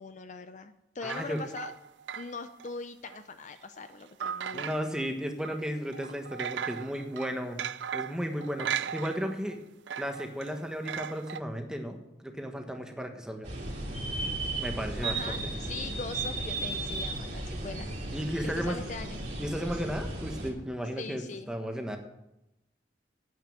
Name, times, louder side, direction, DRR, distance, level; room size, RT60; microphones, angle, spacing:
voice 1, 0.0-1.7 2.2-4.8 15.0-17.9 18.4-19.2 21.0-21.5, left 4 dB, 45° left, 9 dB, 0.6 m, -41 dB
voice 2, 1.0-1.4 4.5-9.6 10.0-13.5 14.6-15.4 18.1-18.8 19.4-22.0, equal, 5° right, 4 dB, 1.3 m, -34 dB
sound 1, 1.1-2.7 3.1-3.2 4.2-5.1 5.4-5.6 5.9-9.6 9.9-11.4, right 8 dB, 85° right, 0.4 m, -37 dB
sound 2, 13.4-20.5, right 2 dB, 40° right, 2.9 m, -35 dB
9.4 x 8.5 x 8.7 m, 0.90 s
head